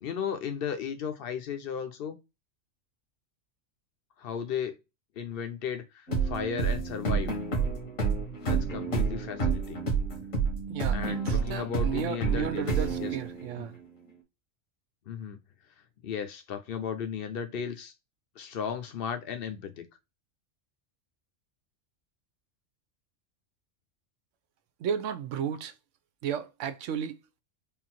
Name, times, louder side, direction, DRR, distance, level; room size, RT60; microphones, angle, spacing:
voice 1, 0.0-2.2 4.2-4.8 5.2-7.3 8.4-9.8 10.9-12.7 13.0-13.2 13.6-13.7 15.1-15.4 16.0-17.9 18.4-19.9, left 7 dB, 55° left, 0.8 m, -35 dB
sound 1, 6.1-13.7, right 4 dB, 85° left, 1.7 m, -29 dB
voice 2, 10.7-13.8 24.8-25.7 26.2-27.2, right 8 dB, 75° right, 0.9 m, -33 dB
3.7 x 2.6 x 4.2 m
omnidirectional pair, 1.3 m